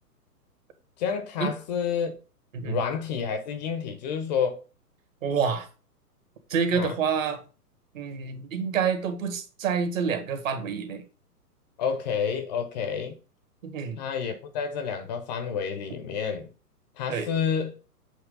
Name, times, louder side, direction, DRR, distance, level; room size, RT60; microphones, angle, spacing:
voice 1, 1.0-2.1 2.6-4.6 6.7-7.0 11.8-13.1 14.0-16.5 17.0-17.8, left 7 dB, 25° left, 0.7 m, -29 dB
voice 2, 5.2-5.7 6.5-7.4 7.9-11.0 13.6-14.0 17.1-17.3, right 6 dB, 55° right, 1.7 m, -27 dB
7.4 x 3.1 x 5.3 m
figure-of-eight pair, 120°, 48 cm